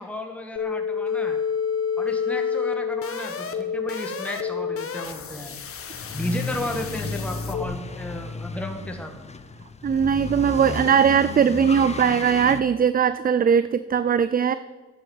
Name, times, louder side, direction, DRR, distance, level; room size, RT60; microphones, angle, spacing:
voice 1, 0.0-1.4 2.0-5.6 6.1-9.1, left 1 dB, 5° left, 3 dB, 1.6 m, -33 dB
sound 1, 0.6-7.6, left 6 dB, 45° left, 1.5 m, -29 dB
sound 2, 5.9-12.6, left 4 dB, 20° left, 1.0 m, -33 dB
voice 2, 9.8-14.5, right 7 dB, 30° right, 14 dB, 0.5 m, -20 dB
11.0 x 8.8 x 7.9 m, 1.3 s
cardioid pair, 90°, 30 cm